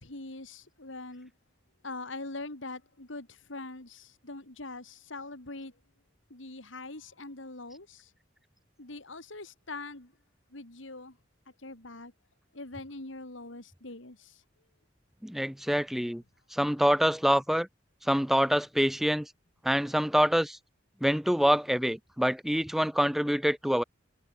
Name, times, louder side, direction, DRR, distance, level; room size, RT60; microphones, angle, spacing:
voice 1, 0.0-1.3 1.8-5.7 6.3-8.1 8.8-10.1 10.5-11.2 11.6-12.1 12.5-14.4, left 2 dB, 80° left, 3.1 m, -43 dB
voice 2, 15.2-16.2 16.5-17.7 18.0-19.3 19.6-20.6 21.0-23.8, equal, ahead, 0.5 m, -26 dB
head